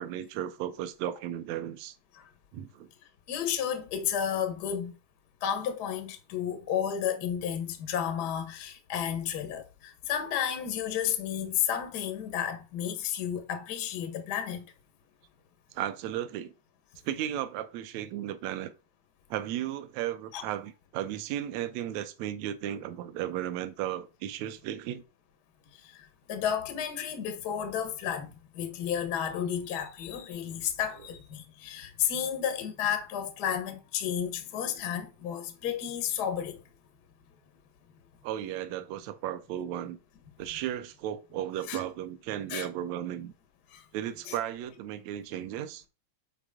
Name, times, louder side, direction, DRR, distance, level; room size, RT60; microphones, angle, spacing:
voice 1, 0.0-2.0 2.5-2.9 15.7-16.5 17.0-18.7 19.3-25.0 38.2-40.0 40.4-43.3 43.9-45.8, right 11 dB, 80° right, 1.7 m, -35 dB
voice 2, 3.3-4.9 5.4-14.6 20.3-20.4 25.8-36.6 41.7-41.8 42.5-42.7 43.7-43.8 44.3-44.4, left 9 dB, 75° left, 0.9 m, -32 dB
8.2 x 4.2 x 3.7 m
omnidirectional pair, 3.8 m